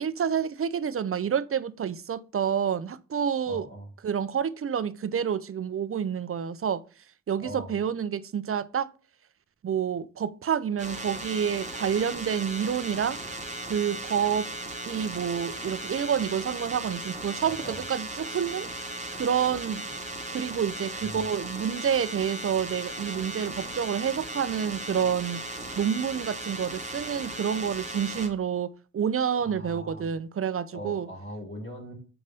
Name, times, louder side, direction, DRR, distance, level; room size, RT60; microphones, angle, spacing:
voice 1, 0.0-3.7 4.0-6.8 7.3-8.9 9.6-13.2 13.7-14.5 14.9-18.7 19.1-19.8 20.3-25.5 25.8-31.1, right 8 dB, 45° right, 0.5 m, -28 dB
voice 2, 3.5-3.9 7.4-7.7 17.4-17.8 21.0-21.3 29.4-30.1 30.7-31.9, right 1 dB, 40° left, 2.6 m, -40 dB
sound 1, 10.8-28.3, right 2 dB, 25° right, 1.3 m, -37 dB
6.5 x 4.2 x 3.5 m
cardioid pair, 55°, 31 cm